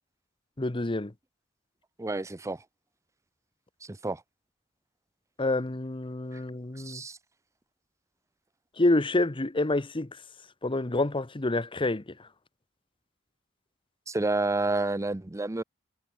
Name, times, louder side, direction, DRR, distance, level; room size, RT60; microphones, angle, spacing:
voice 1, 0.6-1.1 5.4-7.0 8.8-10.2 10.6-12.1, left 2 dB, 25° left, 1.0 m, -27 dB
voice 2, 2.0-2.6 3.9-4.2 6.8-7.2 14.1-15.6, right 2 dB, 15° right, 0.6 m, -29 dB
head